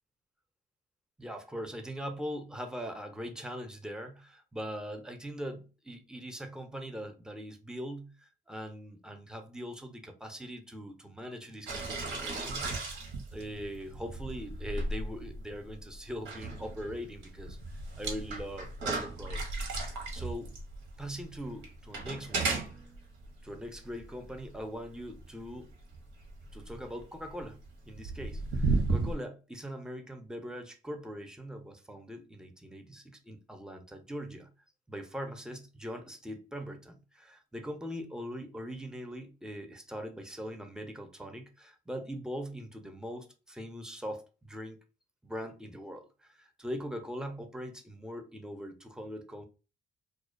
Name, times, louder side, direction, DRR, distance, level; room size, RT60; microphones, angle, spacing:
voice 1, 1.2-13.0 13.3-19.6 20.1-20.5 21.0-22.6 23.4-25.7 26.5-27.6 27.9-34.5 34.9-44.8 45.2-49.4, equal, 5° right, 0.5 m, -41 dB
sound 1, 11.7-29.1, right 3 dB, 90° right, 0.8 m, -35 dB
2.4 x 2.1 x 2.4 m
cardioid pair, 90°, 20 cm